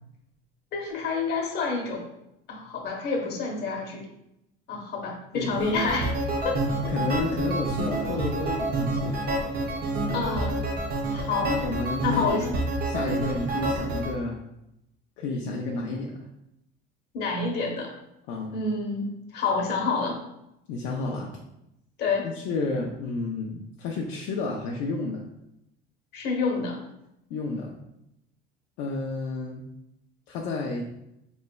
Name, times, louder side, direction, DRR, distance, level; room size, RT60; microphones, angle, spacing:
voice 1, 0.7-2.0 2.5-4.1 4.7-6.1 6.4-6.6 10.1-10.6 11.1-11.6 12.0-12.5 17.1-17.9 18.5-20.2 22.0-22.3 26.1-26.8, left 4 dB, 50° left, 0 dB, 1.1 m, -28 dB
sound 1, 5.5-14.1, right 2 dB, 45° right, 0.7 m, -28 dB
voice 2, 6.9-9.2 11.4-12.5 12.9-14.4 15.2-16.2 18.3-18.5 20.7-21.3 22.4-25.3 27.3-27.7 28.8-29.7 30.3-30.8, left 3 dB, 70° left, -2 dB, 0.5 m, -31 dB
4.2 x 3.1 x 2.2 m, 0.84 s
cardioid pair, 125°, 21 cm